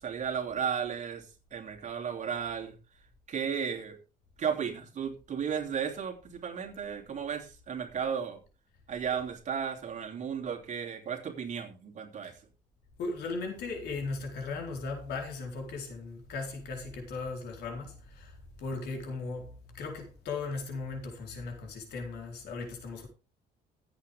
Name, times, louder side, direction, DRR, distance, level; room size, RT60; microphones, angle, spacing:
voice 1, 0.0-1.2 1.5-2.7 3.3-4.0 4.4-8.4 8.9-12.3, right 7 dB, 45° right, 2.9 m, -34 dB
voice 2, 13.0-23.1, left 3 dB, 75° left, 4.3 m, -37 dB
15.0 x 8.3 x 3.5 m
cardioid pair, 110°, 17 cm